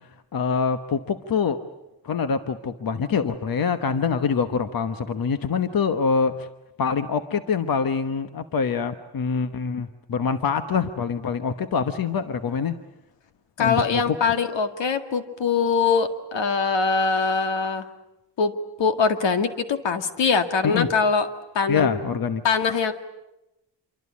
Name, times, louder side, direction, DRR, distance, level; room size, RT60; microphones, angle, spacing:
voice 1, 0.3-1.6 2.0-6.5 6.8-12.7 13.6-14.2 20.6-20.9 21.7-22.4, left 6 dB, 50° left, 10 dB, 1.2 m, -25 dB
voice 2, 13.6-17.8 18.4-18.5 18.8-21.3 21.5-22.0 22.4-22.9, left 5 dB, 80° left, 8 dB, 2.1 m, -22 dB
27.0 x 24.0 x 8.4 m, 0.92 s
wide cardioid pair, 170°, 43 cm